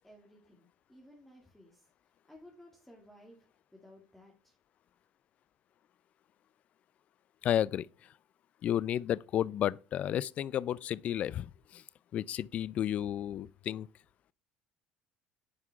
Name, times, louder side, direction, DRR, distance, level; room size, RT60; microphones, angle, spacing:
voice 1, 0.0-1.9 2.3-3.5 3.7-4.6, left 1 dB, 5° left, 2.1 m, -57 dB
voice 2, 7.4-7.9 8.6-11.8 12.1-13.9, left 11 dB, 50° left, 0.4 m, -32 dB
9.7 x 5.7 x 3.5 m
supercardioid pair, 85°, 3 cm